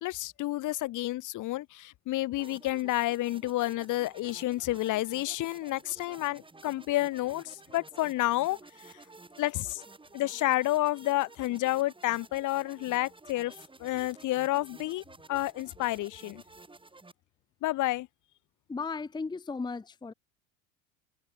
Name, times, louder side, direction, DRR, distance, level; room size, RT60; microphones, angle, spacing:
voice 1, 0.0-8.6 9.4-9.8 10.1-13.5 13.8-15.0 15.3-16.4 17.6-18.1, left 17 dB, 45° left, 1.6 m, -30 dB
sound 1, 2.3-17.1, right 3 dB, 10° right, 6.1 m, -52 dB
voice 2, 18.7-20.1, left 4 dB, 10° left, 1.0 m, -35 dB
hypercardioid pair, 80°, 41 cm